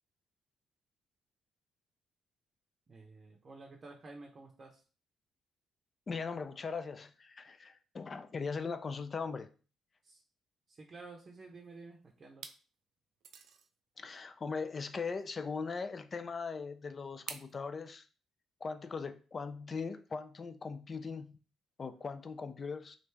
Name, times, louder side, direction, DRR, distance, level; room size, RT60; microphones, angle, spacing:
voice 1, 2.9-4.8 10.0-10.2 10.7-12.4, right 3 dB, 40° right, 0.6 m, -51 dB
voice 2, 6.1-9.5 14.0-18.1 18.6-21.4 21.8-23.0, left 5 dB, 35° left, 0.4 m, -40 dB
sound 1, 11.5-11.9 12.3-12.6 13.2-13.7 15.2-15.3 17.3-17.5, right 7 dB, 80° right, 0.3 m, -47 dB
3.1 x 2.5 x 3.3 m
cardioid pair, 90°, 0 cm